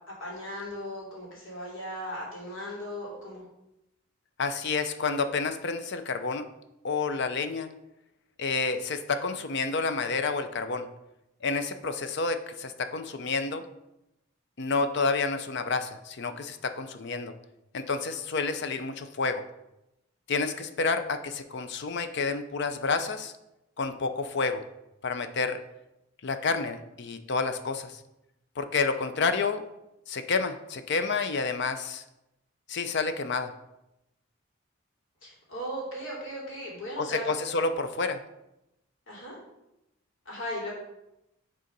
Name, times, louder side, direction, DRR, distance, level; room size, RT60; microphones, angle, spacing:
voice 1, 0.2-3.4 35.2-37.2 39.1-39.4 40.2-40.7, equal, 80° left, -4 dB, 2.7 m, -37 dB
voice 2, 4.4-6.4 6.8-7.7 8.4-10.9 11.4-13.6 14.6-17.3 17.7-19.4 20.3-23.3 23.8-24.6 25.0-25.6 26.2-28.0 28.6-29.6 30.1-32.0 32.7-33.5 37.0-38.2, left 4 dB, 55° left, 9 dB, 0.5 m, -29 dB
6.7 x 3.8 x 5.2 m, 0.89 s
head